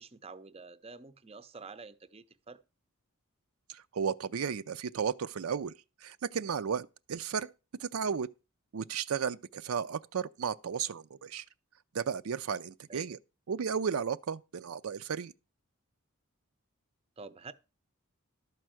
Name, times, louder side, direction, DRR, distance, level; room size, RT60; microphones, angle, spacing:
voice 1, 0.0-2.6 12.9-13.2 17.2-17.5, right 4 dB, 25° right, 0.6 m, -48 dB
voice 2, 3.7-5.7 6.0-7.5 7.8-8.3 8.7-11.4 11.9-13.2 13.5-15.3, right 6 dB, 75° right, 0.5 m, -34 dB
12.0 x 4.6 x 7.6 m
head